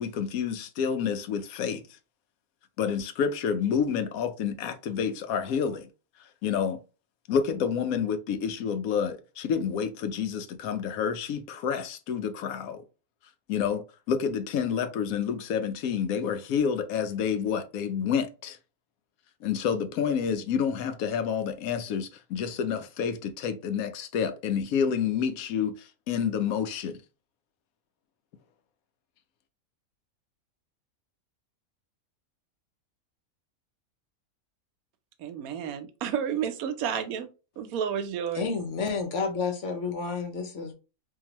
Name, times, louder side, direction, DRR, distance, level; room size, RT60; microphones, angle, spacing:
voice 1, 0.0-1.8 2.8-5.9 6.4-6.8 7.3-12.8 13.5-18.6 19.4-27.0, left 7 dB, 85° left, 1.0 m, -29 dB
voice 2, 35.2-37.3 37.6-38.5, right 8 dB, 90° right, 1.1 m, -31 dB
voice 3, 38.3-40.7, left 5 dB, 60° left, 1.1 m, -30 dB
3.8 x 2.7 x 2.9 m
omnidirectional pair, 1.5 m